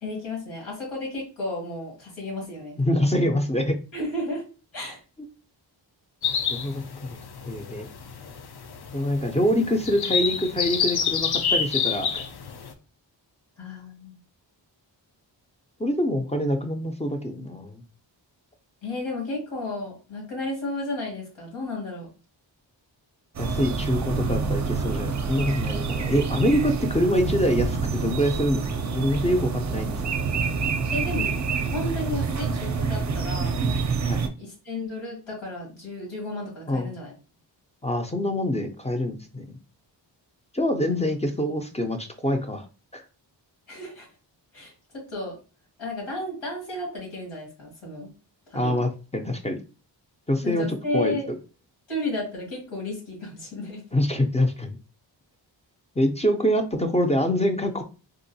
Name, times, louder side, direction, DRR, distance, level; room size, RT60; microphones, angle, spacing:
voice 1, 0.0-2.8 3.9-4.4 4.7-5.0 13.6-14.2 18.8-22.1 30.9-33.5 34.4-37.1 43.7-44.1 44.5-45.4 45.8-48.1 48.5-48.8 50.4-51.3 51.9-53.8, left 2 dB, 85° left, -3 dB, 1.7 m, -33 dB
voice 2, 2.8-3.8 6.5-7.2 7.5-7.9 8.9-12.3 15.8-17.8 23.4-30.0 34.1-34.2 36.7-36.9 37.8-39.6 40.5-42.7 42.9-43.0 48.5-49.6 50.3-50.7 50.9-51.2 53.9-54.8 56.0-57.8, equal, 15° left, 5 dB, 0.4 m, -25 dB
sound 1, 6.2-12.7, left 6 dB, 60° left, 0.6 m, -28 dB
sound 2, 23.3-34.3, right 5 dB, 40° right, 0.5 m, -27 dB
3.7 x 2.5 x 2.7 m, 0.33 s
wide cardioid pair, 75°, 45 cm